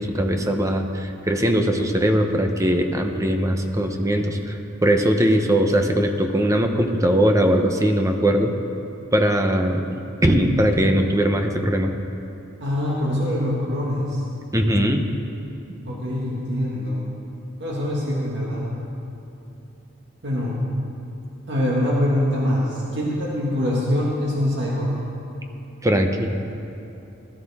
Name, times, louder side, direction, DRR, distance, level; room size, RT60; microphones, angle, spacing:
voice 1, 0.0-8.5 9.1-11.9 14.5-15.0 25.8-26.3, equal, 15° right, 5 dB, 0.8 m, -20 dB
voice 2, 12.6-14.2 15.8-17.1 17.6-18.8 20.2-20.6 21.5-25.0, left 1 dB, 60° right, -5 dB, 1.9 m, -24 dB
16.5 x 13.0 x 3.6 m, 2.9 s
head